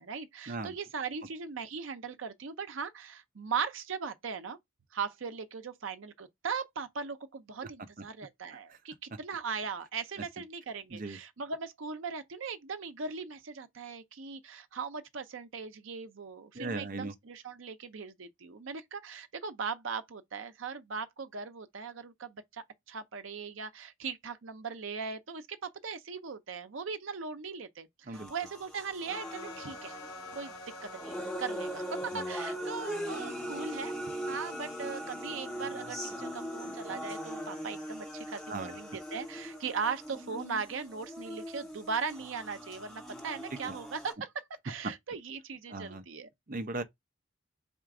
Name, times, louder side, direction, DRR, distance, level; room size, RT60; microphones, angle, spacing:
voice 1, 0.0-4.6 4.9-29.9 30.3-30.5 30.9-33.9 34.3-46.3, right 5 dB, 80° right, 0.6 m, -39 dB
voice 2, 16.5-17.1 28.1-28.3 32.1-32.2 38.5-38.8 43.6-43.7 45.7-46.0 46.5-46.8, right 2 dB, 45° right, 0.6 m, -38 dB
sound 1, 28.1-44.1, equal, 5° left, 1.1 m, -40 dB
Wind instrument woodwind instrument, 29.2-32.9, left 2 dB, 65° left, 1.0 m, -50 dB
4.3 x 2.4 x 4.7 m
head